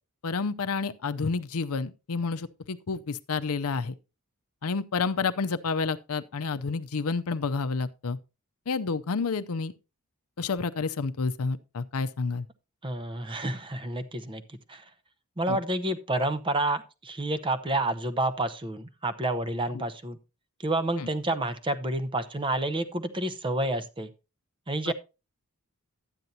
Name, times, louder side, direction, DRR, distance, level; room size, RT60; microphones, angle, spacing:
voice 1, 0.2-3.9 4.6-8.2 8.7-9.7 10.4-12.4 15.5-15.6 19.7-19.8 21.0-21.1 24.9-25.0, left 4 dB, 75° left, 0.6 m, -29 dB
voice 2, 12.8-14.4 14.7-14.8 15.4-20.2 20.6-24.1 24.7-24.9, right 2 dB, 20° right, 0.7 m, -29 dB
12.0 x 9.3 x 2.7 m
head